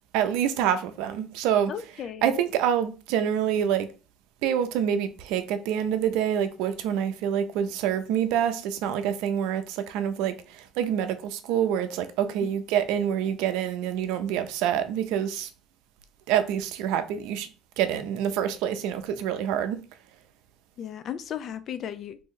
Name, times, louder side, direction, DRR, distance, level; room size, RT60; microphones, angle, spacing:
voice 1, 0.1-1.7 2.2-3.9 4.4-15.5 16.3-17.5 17.8-19.8, right 9 dB, 80° right, 0.5 m, -26 dB
voice 2, 1.7-2.4 20.8-22.2, left 9 dB, 50° left, 0.4 m, -35 dB
3.0 x 2.6 x 3.7 m
cardioid pair, 105°, 0 cm